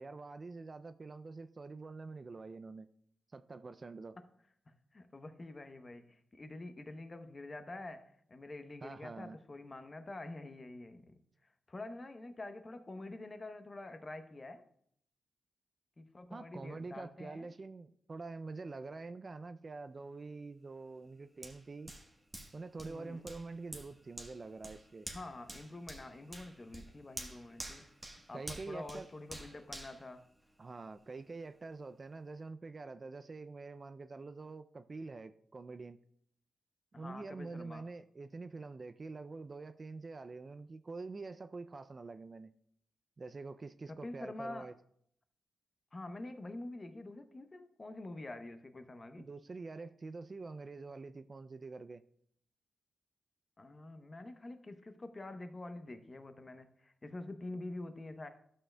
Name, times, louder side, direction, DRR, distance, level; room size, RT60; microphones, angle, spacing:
voice 1, 0.0-2.9 3.3-4.2 8.8-9.4 16.3-21.9 22.5-25.1 28.3-29.1 30.6-36.0 37.0-42.5 43.2-44.7 49.2-52.0, right 3 dB, 35° right, 11 dB, 0.3 m, -46 dB
voice 2, 4.7-8.0 8.3-11.2 11.7-14.6 16.0-17.5 22.9-23.3 25.1-27.8 28.3-30.2 36.9-37.8 43.9-44.7 45.9-49.3 53.6-58.3, left 2 dB, 30° left, 8 dB, 0.7 m, -47 dB
Hands, 21.4-30.9 31.4-31.5, right 1 dB, 10° right, 1.1 m, -50 dB
12.5 x 6.4 x 2.2 m, 0.67 s
cardioid pair, 80°, 0 cm